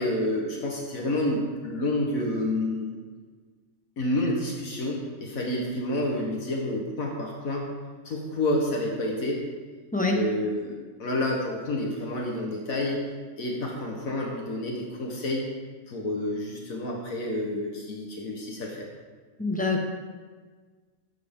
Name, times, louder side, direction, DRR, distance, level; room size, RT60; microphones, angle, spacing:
voice 1, 0.0-3.0 4.0-7.7 8.0-9.4 10.1-13.0 13.4-15.5 15.9-18.9, left 1 dB, 75° left, -1 dB, 1.7 m, -29 dB
voice 2, 19.4-19.8, left 3 dB, 5° left, 1 dB, 1.0 m, -25 dB
14.0 x 7.6 x 3.6 m, 1.5 s
omnidirectional pair, 1.5 m